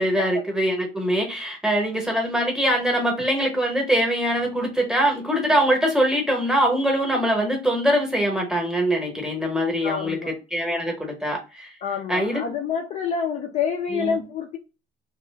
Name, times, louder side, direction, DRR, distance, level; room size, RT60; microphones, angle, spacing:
voice 1, 0.0-10.2 10.5-11.7 12.1-12.4 13.9-14.2, equal, 5° right, 0.8 m, -23 dB
voice 2, 9.8-10.3 11.8-14.6, left 6 dB, 35° left, 0.4 m, -27 dB
2.9 x 2.4 x 3.3 m
cardioid pair, 175°, 20 cm